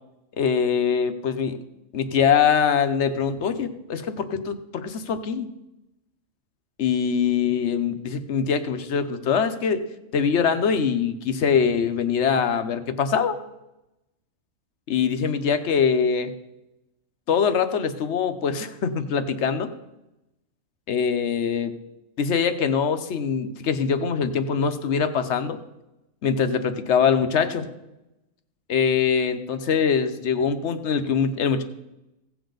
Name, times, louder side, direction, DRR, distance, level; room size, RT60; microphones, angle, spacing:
voice 1, 0.4-1.6 1.9-5.5 6.8-9.8 10.1-13.4 14.9-16.3 17.3-19.7 20.9-21.7 22.2-25.6 26.2-27.7 28.7-31.6, left 6 dB, 60° left, 10 dB, 1.0 m, -23 dB
16.5 x 7.2 x 3.9 m, 0.94 s
omnidirectional pair, 1.4 m